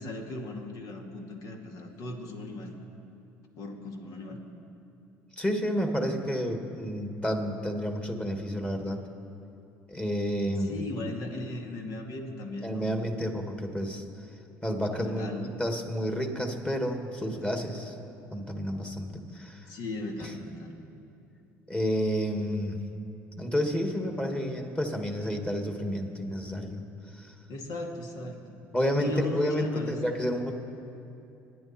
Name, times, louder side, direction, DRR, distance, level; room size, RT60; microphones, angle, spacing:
voice 1, 0.0-2.8 3.6-4.4 10.6-12.9 14.9-15.6 19.7-20.8 27.5-28.6 29.0-30.0, left 2 dB, 65° left, 2 dB, 2.2 m, -37 dB
voice 2, 5.4-9.0 9.9-10.8 12.6-14.0 14.6-18.0 18.3-19.7 21.7-22.8 23.4-26.8 27.2-27.3 28.7-30.5, equal, 15° left, 4 dB, 2.3 m, -30 dB
25.5 x 10.5 x 4.5 m, 2.7 s
supercardioid pair, 75°, 7 cm